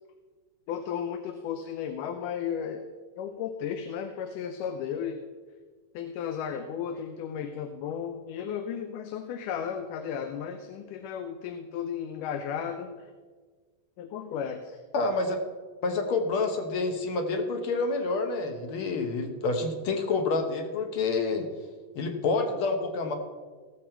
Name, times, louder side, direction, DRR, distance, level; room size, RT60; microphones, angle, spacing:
voice 1, 0.7-2.9 3.2-5.2 5.9-13.1 14.0-14.8, left 8 dB, 80° left, 7 dB, 2.2 m, -34 dB
voice 2, 14.9-15.4 15.8-21.5 21.9-23.1, left 3 dB, 60° left, 5 dB, 1.5 m, -28 dB
16.5 x 7.5 x 4.4 m, 1.5 s
omnidirectional pair, 3.7 m